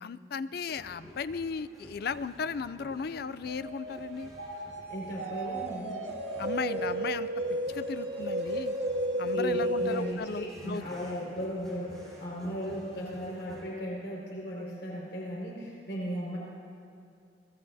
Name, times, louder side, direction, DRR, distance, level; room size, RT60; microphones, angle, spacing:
voice 1, 0.0-4.3 6.4-7.3 7.7-8.8 9.2-10.8, left 5 dB, 60° left, 14 dB, 0.4 m, -36 dB
sound 1, 0.6-13.6, equal, 5° left, 4.3 m, -52 dB
sound 2, 3.5-10.1, right 1 dB, 75° right, 2.0 m, -33 dB
voice 2, 4.9-6.0 9.3-16.4, equal, 85° left, -5 dB, 5.1 m, -36 dB
26.5 x 19.0 x 2.7 m, 2.4 s
head